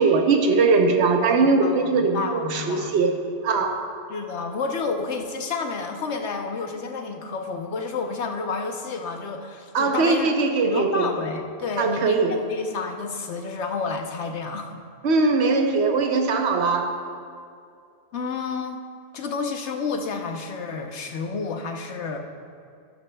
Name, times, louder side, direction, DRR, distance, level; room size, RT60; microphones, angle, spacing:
voice 1, 0.0-3.1 3.4-3.9 9.7-11.1 11.8-12.4 15.0-17.0, right 4 dB, 70° right, 4 dB, 1.1 m, -21 dB
voice 2, 1.6-3.0 4.1-10.3 10.6-14.8 15.1-15.2 18.1-18.8 19.1-22.2, left 4 dB, 80° left, 4 dB, 1.2 m, -30 dB
13.0 x 13.0 x 2.3 m, 2.3 s
omnidirectional pair, 1.2 m